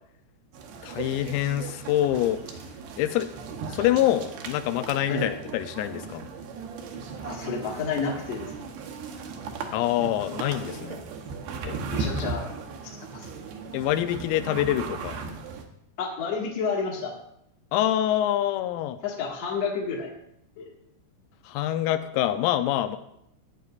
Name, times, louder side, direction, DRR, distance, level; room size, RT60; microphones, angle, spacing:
sound 1, 0.5-15.6, right 4 dB, 80° right, 2.3 m, -37 dB
voice 1, 0.8-2.4 3.0-3.3 3.7-6.2 9.7-11.0 11.6-11.8 13.7-15.2 17.7-19.0 21.5-23.0, left 12 dB, 85° left, 9 dB, 3.3 m, -25 dB
voice 2, 7.2-8.5 11.9-12.5 13.1-13.3 16.0-17.1 19.0-20.1 20.6-20.7, left 5 dB, 60° left, -2 dB, 1.7 m, -30 dB
15.0 x 9.4 x 2.5 m, 0.76 s
omnidirectional pair, 6.0 m